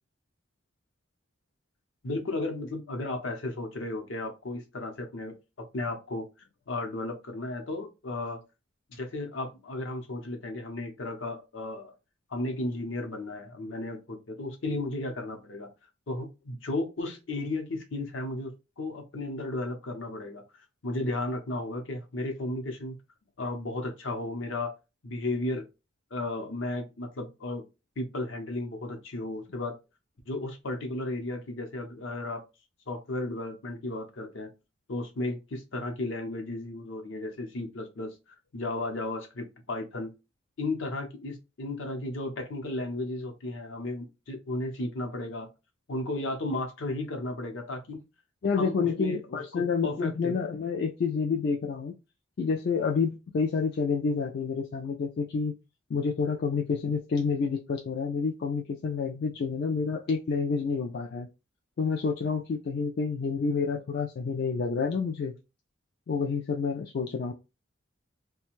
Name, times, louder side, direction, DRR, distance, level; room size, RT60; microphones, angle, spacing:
voice 1, 2.0-6.3 6.7-8.4 8.9-11.9 12.3-15.7 16.1-18.5 18.8-20.4 20.8-23.0 23.4-24.8 25.0-25.7 26.1-27.6 28.0-29.8 30.3-32.4 32.9-34.5 34.9-38.1 38.5-40.1 40.6-45.5 45.9-48.0 48.5-50.3, left 2 dB, 70° left, 0.8 m, -34 dB
voice 2, 48.4-51.9 52.4-55.5 55.9-61.3 61.8-65.3 66.1-67.3, left 5 dB, 55° left, 0.3 m, -29 dB
2.5 x 2.2 x 3.0 m
head